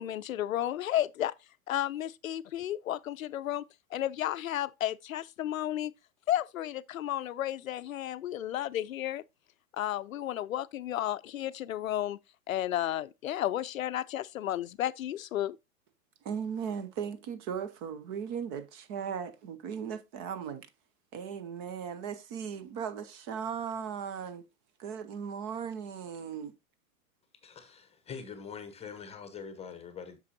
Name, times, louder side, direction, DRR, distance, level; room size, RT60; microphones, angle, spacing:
voice 1, 0.0-1.3 1.7-3.6 3.9-5.9 6.3-9.2 9.7-12.2 12.5-15.6, left 12 dB, 70° left, 0.5 m, -32 dB
voice 2, 16.2-20.7 21.1-24.4 24.8-26.5, right 7 dB, 20° right, 0.3 m, -37 dB
voice 3, 27.4-30.2, left 6 dB, 15° left, 0.9 m, -44 dB
8.2 x 6.2 x 2.7 m
figure-of-eight pair, 100°, 43 cm